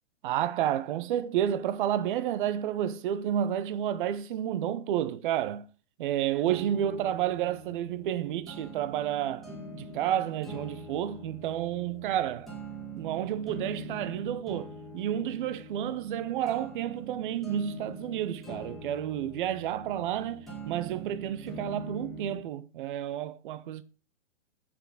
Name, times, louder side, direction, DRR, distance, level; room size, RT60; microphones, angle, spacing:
voice 1, 0.2-5.6 6.0-9.5 9.7-12.5 12.9-23.8, right 10 dB, 40° right, 0.7 m, -30 dB
sound 1, 6.5-22.5, right 2 dB, ahead, 1.8 m, -44 dB
6.7 x 5.9 x 4.8 m
hypercardioid pair, 130°, 39 cm